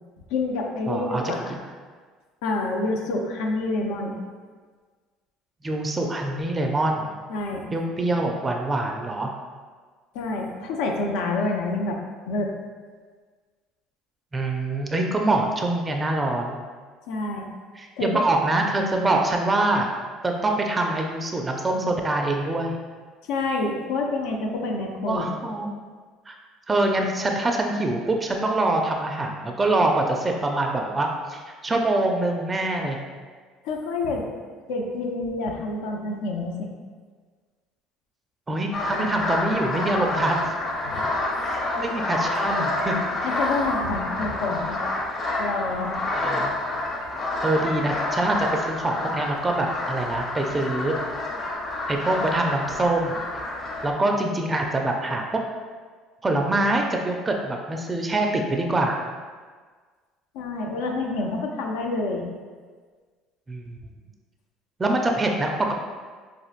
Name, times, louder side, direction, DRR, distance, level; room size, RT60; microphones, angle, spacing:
voice 1, 0.3-1.5 2.4-4.2 7.3-7.7 10.1-12.0 12.3-12.5 17.1-17.5 18.0-18.2 23.3-25.5 33.6-34.3 34.7-36.7 40.8-41.0 43.2-44.8 45.4-46.0 60.3-62.3, left 2 dB, 85° left, 1 dB, 0.4 m, -28 dB
voice 2, 0.9-1.3 5.6-7.1 7.7-9.3 14.3-16.6 17.8-19.9 20.2-22.8 25.1-25.8 26.3-26.4 26.7-33.0 38.5-40.5 41.5-43.0 46.2-46.5 47.4-50.9 51.9-53.2 53.8-55.2 56.2-59.0 63.5-63.8 64.8-65.7, right 2 dB, 20° right, 2 dB, 0.4 m, -24 dB
sound 1, 38.7-53.9, left 2 dB, 40° left, 0.8 m, -28 dB
4.4 x 2.4 x 2.4 m, 1.5 s
supercardioid pair, 105°, 0 cm